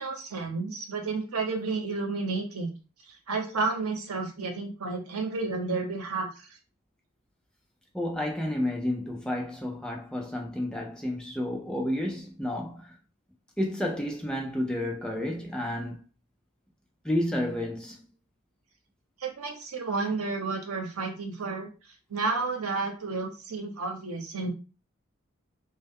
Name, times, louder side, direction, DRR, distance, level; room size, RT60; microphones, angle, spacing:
voice 1, 0.0-2.7 3.1-6.6 19.2-21.7 22.1-24.5, right 3 dB, 90° right, 0.7 m, -31 dB
voice 2, 7.9-12.9 13.6-16.0 17.0-18.1, left 1 dB, 5° left, 0.4 m, -31 dB
2.1 x 2.0 x 3.4 m
head